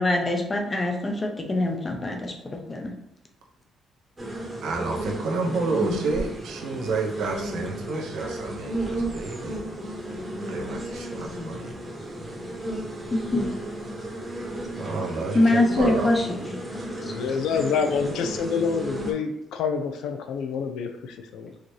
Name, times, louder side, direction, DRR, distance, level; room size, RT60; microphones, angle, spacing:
voice 1, 0.0-2.9 13.1-13.4 15.3-16.9 17.9-18.1, left 2 dB, 20° left, 3 dB, 0.7 m, -24 dB
sound 1, 4.2-19.1, right 1 dB, 15° right, 1.0 m, -33 dB
voice 2, 4.6-9.6 10.5-11.8 14.8-16.1, right 3 dB, 80° right, 0 dB, 0.9 m, -30 dB
voice 3, 16.7-21.5, left 6 dB, 85° left, 6 dB, 0.5 m, -27 dB
4.8 x 2.9 x 3.2 m, 0.85 s
cardioid pair, 135°, 0 cm